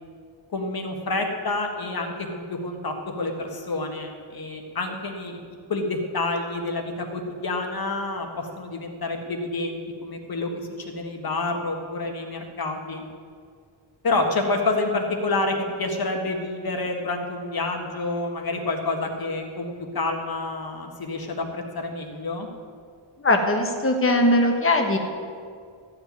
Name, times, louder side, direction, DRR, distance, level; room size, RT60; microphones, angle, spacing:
voice 1, 0.5-5.4 5.7-13.0 14.0-22.5, left 2 dB, 50° left, 3 dB, 1.6 m, -28 dB
voice 2, 23.2-25.0, left 1 dB, 25° left, 3 dB, 1.4 m, -20 dB
14.5 x 5.1 x 9.3 m, 2.1 s
wide cardioid pair, 145°, 47 cm